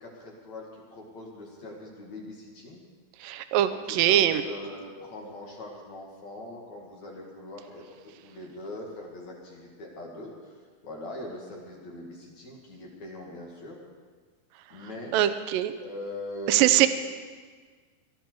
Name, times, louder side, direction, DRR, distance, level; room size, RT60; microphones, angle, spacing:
voice 1, 0.0-2.8 3.2-3.3 3.6-7.8 8.2-13.8 14.7-15.1 15.8-16.9, left 1 dB, 50° left, -2 dB, 3.1 m, -41 dB
voice 2, 3.2-4.4 15.1-15.7 16.5-16.9, right 12 dB, 75° right, 11 dB, 2.1 m, -22 dB
20.5 x 12.5 x 4.7 m, 1.5 s
omnidirectional pair, 4.6 m